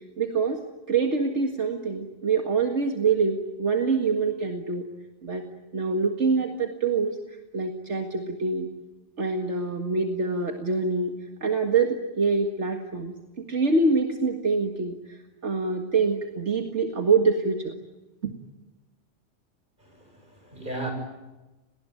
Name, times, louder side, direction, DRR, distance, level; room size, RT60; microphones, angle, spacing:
voice 1, 0.2-0.6 0.9-4.8 5.2-5.4 5.7-7.2 7.5-8.7 9.2-11.2 11.4-13.1 13.5-15.0 15.4-17.7 18.2-18.3, right 4 dB, 75° right, 4 dB, 2.2 m, -25 dB
voice 2, 19.8-20.9, right 2 dB, 40° right, 4 dB, 7.2 m, -36 dB
29.0 x 20.0 x 9.2 m, 1.1 s
omnidirectional pair, 1.2 m